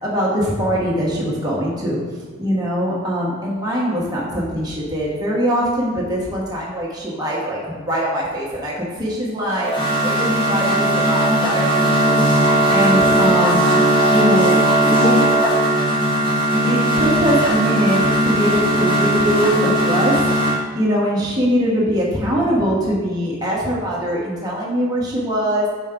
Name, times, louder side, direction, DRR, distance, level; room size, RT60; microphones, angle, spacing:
voice 1, 0.0-2.0 2.4-12.2 12.7-13.6 14.1-14.6 14.9-15.1 16.6-25.7, equal, 20° right, -5 dB, 1.3 m, -22 dB
sound 1, 9.5-20.6, right 1 dB, 25° left, 1.2 m, -17 dB
5.8 x 5.1 x 3.8 m, 1.5 s
head